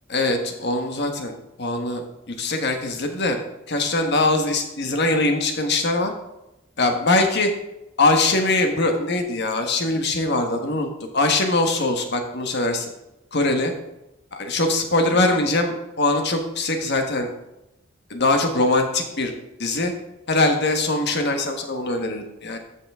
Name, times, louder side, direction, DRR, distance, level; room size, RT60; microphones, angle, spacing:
voice 1, 0.1-3.4 3.7-6.1 6.8-7.5 8.0-12.9 13.3-13.7 14.5-17.3 18.1-19.3 19.6-19.9 20.3-22.6, left 2 dB, 55° left, 4 dB, 1.4 m, -22 dB
14.0 x 5.8 x 3.6 m, 0.92 s
head